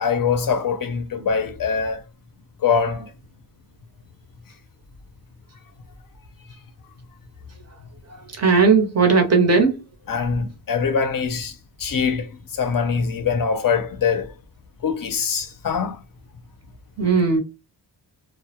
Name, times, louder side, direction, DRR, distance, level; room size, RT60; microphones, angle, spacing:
voice 1, 0.0-2.0 2.6-3.1 10.1-14.3 14.8-16.0, left 6 dB, 50° left, 0.5 m, -23 dB
voice 2, 8.4-9.7 17.0-17.4, right 4 dB, 35° right, 0.6 m, -17 dB
2.2 x 2.0 x 2.8 m
wide cardioid pair, 175°, 45 cm